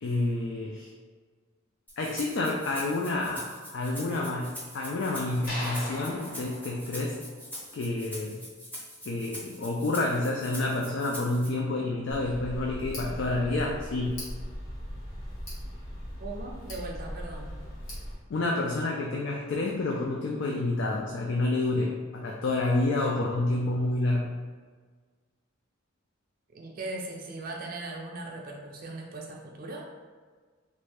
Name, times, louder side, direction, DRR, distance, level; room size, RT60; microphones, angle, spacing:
voice 1, 0.0-0.9 2.0-7.2 7.7-8.4 9.1-14.2 18.3-24.3, left 2 dB, 60° left, -1 dB, 0.4 m, -29 dB
Rattle (instrument), 1.9-11.5, equal, 10° left, 0.6 m, -43 dB
sound 1, 5.5-7.8, left 1 dB, 40° left, 1.0 m, -39 dB
Tick, 12.1-18.1, equal, 80° left, 1.4 m, -39 dB
voice 2, 16.2-17.5 26.5-29.9, right 2 dB, 45° right, 0 dB, 0.4 m, -39 dB
3.1 x 2.6 x 3.3 m, 1.5 s
head